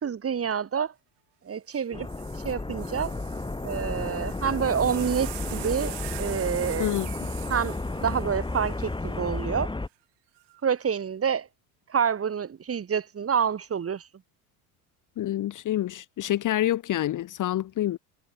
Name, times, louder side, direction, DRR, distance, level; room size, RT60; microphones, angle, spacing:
voice 1, 0.0-0.9 1.4-2.1 2.4-3.1 3.6-7.0 7.5-9.7 10.6-11.5 11.9-14.1, right 7 dB, 30° right, 2.6 m, -28 dB
sound 1, 1.7-1.8 2.1-9.5 10.4-10.8, right 22 dB, 70° right, 3.3 m, -43 dB
sound 2, 1.9-9.9, left 2 dB, 10° left, 2.7 m, -32 dB
voice 2, 15.2-18.0, left 13 dB, 45° left, 1.1 m, -27 dB
supercardioid pair, 90°, 44 cm